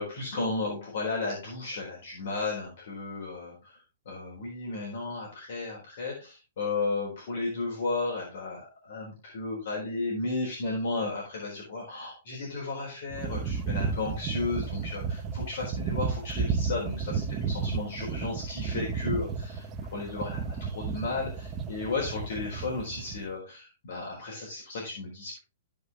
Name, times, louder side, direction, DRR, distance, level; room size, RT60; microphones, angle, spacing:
voice 1, 0.0-25.4, left 3 dB, 45° left, -3 dB, 4.1 m, -34 dB
sound 1, 13.1-23.3, right 5 dB, 15° right, 0.6 m, -33 dB
14.5 x 5.2 x 3.6 m, 0.31 s
hypercardioid pair, 175°, 0 cm